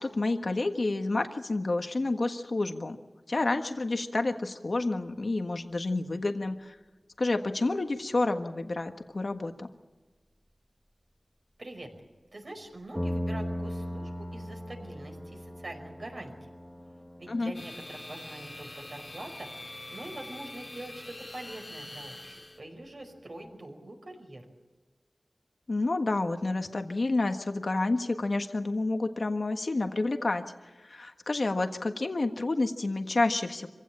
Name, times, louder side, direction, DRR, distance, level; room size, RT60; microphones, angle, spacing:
voice 1, 0.0-3.0 3.3-6.8 7.2-9.7 17.3-17.5 25.7-30.4 30.8-33.7, left 2 dB, 65° left, 6 dB, 1.5 m, -29 dB
voice 2, 11.6-11.9 12.3-16.3 17.2-19.5 19.9-24.4, right 1 dB, 65° right, 3 dB, 5.3 m, -44 dB
sound 1, 11.8-12.0 12.6-12.7 12.9-23.6, equal, 10° left, 1.4 m, -40 dB
sound 2, 17.5-22.6, left 1 dB, 40° left, 1.9 m, -44 dB
25.5 x 16.5 x 8.7 m, 1.2 s
wide cardioid pair, 55°, 0 cm